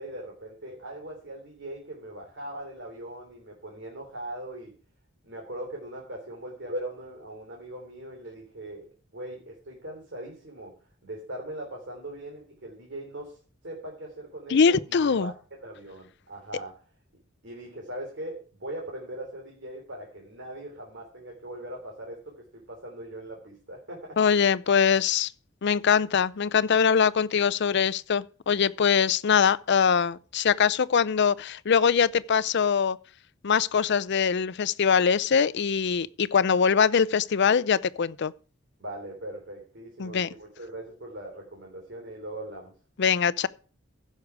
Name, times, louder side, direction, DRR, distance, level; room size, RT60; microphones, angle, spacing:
voice 1, 0.0-4.7 5.2-8.9 9.1-10.7 11.0-13.4 13.6-15.3 15.6-16.8 17.4-24.2 38.8-42.7, right 1 dB, 60° right, 3.3 m, -40 dB
voice 2, 14.5-15.3 24.2-25.3 25.6-33.0 33.4-38.3 40.0-40.3 43.0-43.5, left 6 dB, 60° left, 0.5 m, -23 dB
15.5 x 6.6 x 4.7 m
head